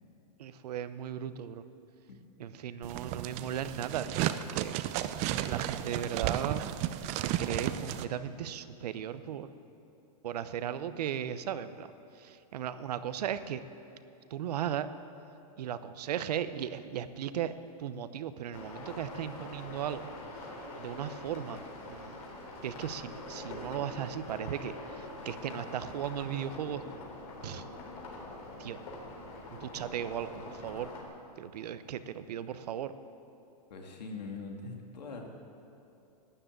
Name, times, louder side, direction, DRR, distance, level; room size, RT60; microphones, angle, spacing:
voice 1, 0.4-1.6 2.4-4.8 5.5-6.6 7.1-9.5 10.2-11.9 12.1-13.6 14.3-14.9 15.6-20.5 20.8-21.6 21.9-22.2 22.6-27.1 27.4-27.7 28.6-28.8 29.5-30.9 31.4-32.9, right 9 dB, 70° right, 13 dB, 0.8 m, -37 dB
sound 1, 2.8-8.1, right 12 dB, 35° right, 0.6 m, -33 dB
sound 2, 18.5-31.0, left 2 dB, 60° left, 4.0 m, -44 dB
voice 2, 33.7-35.3, left 3 dB, 90° left, 2 dB, 2.4 m, -42 dB
12.5 x 10.0 x 9.0 m, 2.9 s
hypercardioid pair, 135°, 21 cm